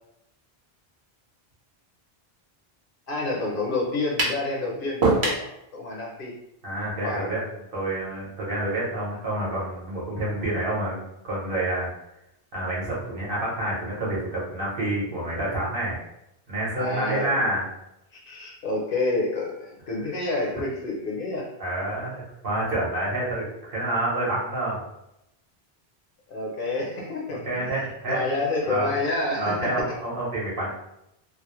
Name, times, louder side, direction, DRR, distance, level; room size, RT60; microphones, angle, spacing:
voice 1, 3.1-6.3 7.0-7.3 16.8-17.3 18.1-21.5 26.3-29.7, left 2 dB, 60° left, -1 dB, 0.8 m, -29 dB
sound 1, 4.2-4.4 5.0-5.5, right 3 dB, 85° right, 0.9 m, -22 dB
voice 2, 6.6-7.4 7.7-11.9 12.5-16.0 16.5-17.6 21.6-24.8 27.5-28.2 28.7-28.9 29.4-30.7, right 1 dB, 60° right, -5 dB, 1.0 m, -28 dB
2.4 x 2.0 x 2.9 m, 0.85 s
omnidirectional pair, 1.0 m